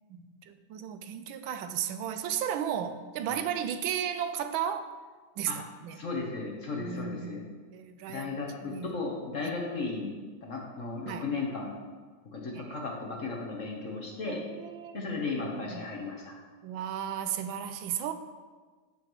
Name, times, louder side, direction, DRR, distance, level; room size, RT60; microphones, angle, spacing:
voice 1, 0.1-4.9 5.4-6.0 6.8-8.3 8.6-9.0 11.1-11.3 12.5-12.7 14.3-15.0 15.3-15.9 16.6-18.1, right 9 dB, 80° right, 9 dB, 1.4 m, -35 dB
voice 2, 5.9-7.4 8.1-10.1 10.4-11.7 12.3-14.4 14.9-16.4, left 3 dB, 45° left, -1 dB, 1.3 m, -35 dB
14.5 x 5.7 x 3.1 m, 1.4 s
omnidirectional pair, 2.2 m